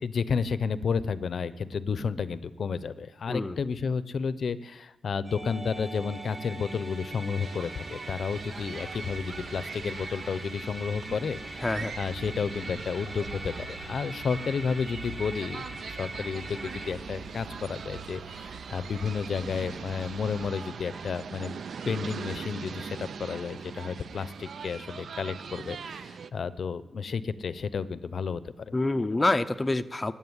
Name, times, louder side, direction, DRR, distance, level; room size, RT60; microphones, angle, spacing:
voice 1, 0.0-11.7 12.0-28.7, left 5 dB, 50° left, 15 dB, 0.6 m, -32 dB
voice 2, 3.3-3.6 11.6-11.9 28.7-30.1, left 2 dB, 15° left, 8 dB, 0.5 m, -26 dB
Musical instrument, 5.2-16.9, right 2 dB, 25° right, 5.7 m, -41 dB
sound 1, 7.4-26.3, right 6 dB, 55° right, 0.6 m, -42 dB
sound 2, 8.2-20.5, right 2 dB, 85° right, 2.1 m, -47 dB
16.5 x 8.7 x 9.6 m, 0.99 s
wide cardioid pair, 135°, 0 cm